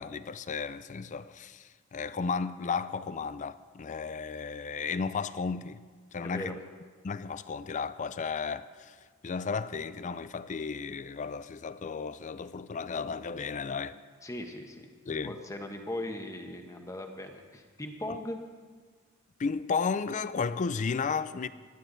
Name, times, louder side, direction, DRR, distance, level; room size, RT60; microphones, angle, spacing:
voice 1, 0.0-5.8 6.1-6.6 7.0-9.0 9.2-14.0 15.1-15.4 18.1-18.2 19.4-21.5, left 5 dB, 35° left, 0.4 m, -34 dB
voice 2, 6.2-6.6 14.2-14.9 15.2-18.4, left 1 dB, 15° left, 1.1 m, -39 dB
19.0 x 11.0 x 3.9 m
head